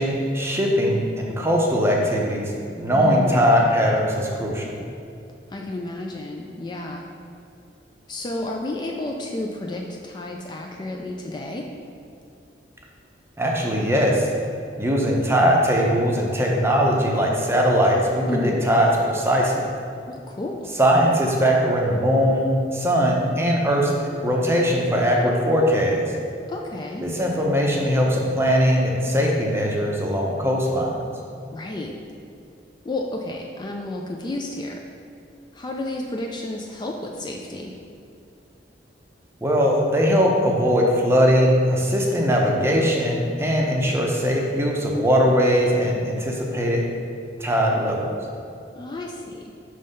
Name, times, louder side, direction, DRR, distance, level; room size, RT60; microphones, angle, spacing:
voice 1, 0.0-2.5 2.8-4.7 13.4-14.3 14.8-19.7 20.8-23.9 24.2-26.0 27.0-31.0 39.4-46.8 47.4-48.1, equal, 15° right, -1 dB, 0.7 m, -20 dB
voice 2, 2.9-3.4 5.5-7.1 8.1-11.7 18.3-18.7 20.1-20.8 26.5-27.1 31.5-32.0 32.8-34.8 35.5-37.7 48.7-49.5, left 2 dB, 25° left, 1 dB, 0.3 m, -31 dB
5.4 x 3.2 x 5.4 m, 2.5 s
head